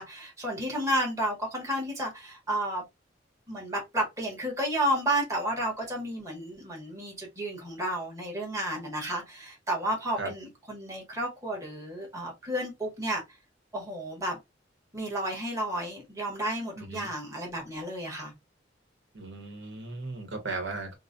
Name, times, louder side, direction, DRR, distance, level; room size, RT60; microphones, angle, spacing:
voice 1, 0.0-2.8 3.5-13.2 13.7-14.4 14.9-18.3, right 1 dB, 15° right, 1.2 m, -32 dB
voice 2, 16.8-17.1 19.1-20.9, right 3 dB, 85° right, 1.1 m, -36 dB
3.8 x 2.1 x 2.5 m
head